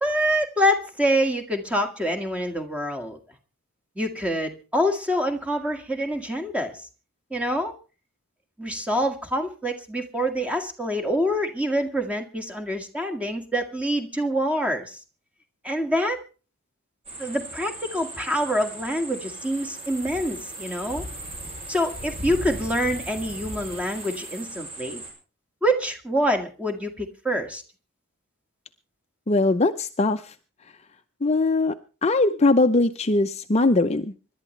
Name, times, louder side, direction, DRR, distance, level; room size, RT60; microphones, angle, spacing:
voice 1, 0.0-3.2 4.0-6.8 7.3-7.7 8.6-15.0 15.6-16.2 17.2-21.0 21.7-25.0 25.6-27.6, equal, 5° right, 5 dB, 1.9 m, -26 dB
sound 1, 17.0-25.1, right 1 dB, 30° right, 7.1 m, -37 dB
voice 2, 29.3-30.3 31.2-31.7 32.0-34.1, left 2 dB, 30° left, 8 dB, 0.6 m, -21 dB
25.5 x 11.5 x 3.2 m, 0.36 s
head